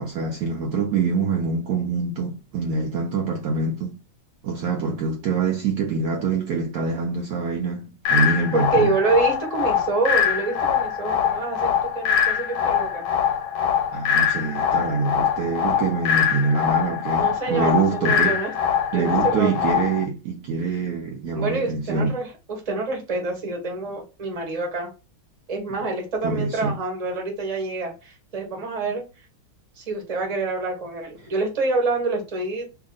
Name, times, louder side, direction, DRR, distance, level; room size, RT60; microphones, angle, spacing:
voice 1, 0.0-4.0 4.4-9.0 13.9-18.4 18.9-22.1 26.2-26.8, right 4 dB, 85° right, 0.8 m, -25 dB
sound 1, 8.0-20.0, left 8 dB, 85° left, 1.5 m, -23 dB
voice 2, 8.5-13.0 17.1-18.5 18.9-19.5 21.3-24.9 25.5-29.0 29.8-32.7, right 3 dB, 30° right, 0.7 m, -27 dB
2.9 x 2.8 x 3.7 m
omnidirectional pair, 2.3 m